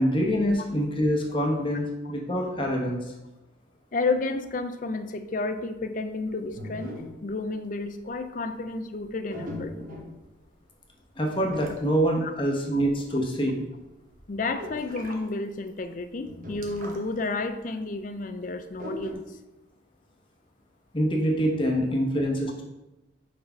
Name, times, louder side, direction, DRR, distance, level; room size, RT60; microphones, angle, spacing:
voice 1, 0.0-3.0 11.2-13.6 20.9-22.6, equal, 25° left, 1 dB, 1.0 m, -25 dB
voice 2, 3.9-6.9 7.2-9.7 12.2-12.3 12.7-12.8 14.3-19.4, left 3 dB, 40° left, 9 dB, 0.4 m, -31 dB
sound 1, 6.4-7.4 7.9-8.2 9.3-10.2 11.4-12.1 12.8-13.0 13.3-13.4 13.8-15.2 15.7-15.8 16.1-17.2 17.4-17.5 18.7-19.1, left 1 dB, 45° right, 1.0 m, -39 dB
4.9 x 4.6 x 5.6 m, 1.0 s
head